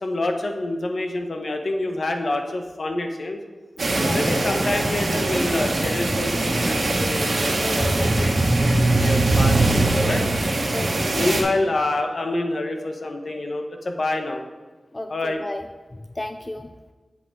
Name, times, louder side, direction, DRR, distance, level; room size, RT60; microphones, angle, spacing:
voice 1, 0.0-3.4 4.1-10.2 11.1-14.4 15.1-15.4, left 2 dB, 60° left, 4 dB, 1.0 m, -27 dB
sound 1, 3.8-11.4, right 2 dB, 75° right, 1.4 m, -24 dB
voice 2, 3.9-4.3 7.6-7.7 10.7-11.4 14.9-15.6 15.9-16.7, left 1 dB, 25° left, 7 dB, 0.4 m, -33 dB
sound 2, 5.6-10.8, right 2 dB, 25° right, 0.6 m, -23 dB
8.2 x 7.8 x 3.6 m, 1.3 s
wide cardioid pair, 75°, 0 cm